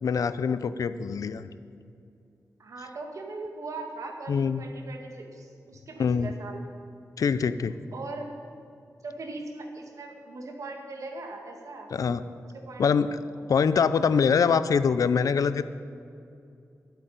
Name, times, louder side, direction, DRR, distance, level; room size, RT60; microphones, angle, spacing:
voice 1, 0.0-1.5 4.3-4.6 6.0-6.3 7.2-7.7 11.9-12.2 12.8-13.2 13.5-15.6, left 6 dB, 75° left, 13 dB, 0.5 m, -24 dB
voice 2, 2.6-6.6 7.9-8.3 9.0-11.9 12.4-13.5, right 3 dB, 65° right, 2 dB, 2.0 m, -40 dB
12.5 x 8.2 x 9.4 m, 2.6 s
wide cardioid pair, 165°, 6 cm